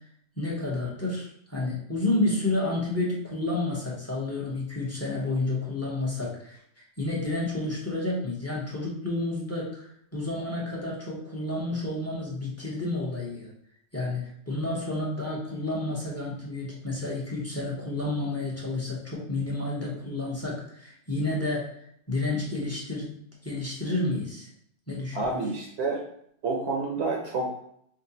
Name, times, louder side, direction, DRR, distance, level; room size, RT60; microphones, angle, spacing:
voice 1, 0.4-9.8 10.1-13.5 13.9-21.7 22.1-23.1 23.4-24.5 24.9-25.2, left 2 dB, 15° left, -4 dB, 0.7 m, -30 dB
voice 2, 25.1-26.0 26.4-27.6, right 3 dB, 75° right, -1 dB, 0.9 m, -29 dB
4.5 x 2.1 x 2.8 m, 0.68 s
omnidirectional pair, 1.1 m